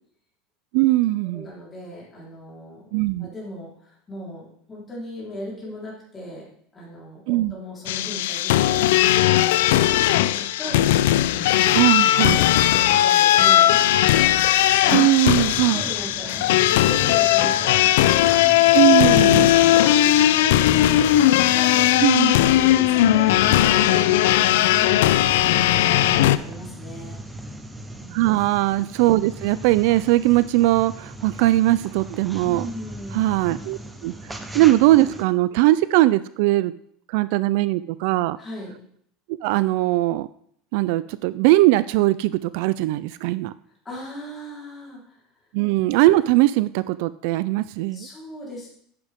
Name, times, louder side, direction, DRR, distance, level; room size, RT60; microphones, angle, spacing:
voice 1, 0.7-1.4 2.9-3.3 7.3-7.5 11.7-12.4 14.9-15.8 18.7-19.5 22.0-22.4 28.1-32.7 33.1-36.7 37.1-38.4 39.4-40.3 40.7-43.5 45.5-48.1, right 17 dB, 60° right, 16 dB, 0.3 m, -20 dB
voice 2, 1.3-2.9 3.2-6.4 6.7-11.7 12.4-13.8 14.7-15.0 15.5-18.7 19.1-19.2 19.5-27.2 28.0-28.2 32.4-33.2 38.4-38.7 43.8-45.5 47.9-48.7, left 1 dB, 15° left, -6 dB, 3.9 m, -38 dB
sound 1, 7.9-26.4, left 13 dB, 90° left, 0.5 m, -18 dB
sound 2, 15.4-35.2, right 1 dB, 5° right, 0.8 m, -39 dB
10.5 x 9.7 x 3.6 m, 0.67 s
supercardioid pair, 170°, 0 cm